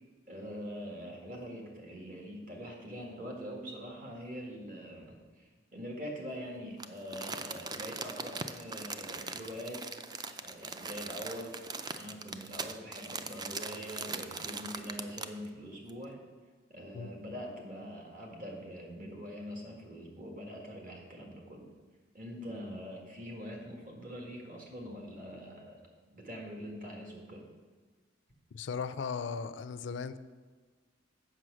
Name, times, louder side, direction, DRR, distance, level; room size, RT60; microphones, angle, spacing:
voice 1, 0.3-11.5 11.9-16.2 16.7-21.7 22.1-27.5, equal, 45° right, 1.8 m, -44 dB
Crumpling crinkling, 6.8-15.5 15.9-16.0, right 4 dB, 20° right, 0.4 m, -41 dB
voice 2, 28.5-30.2, left 5 dB, 70° left, 0.4 m, -37 dB
7.8 x 6.2 x 6.2 m
head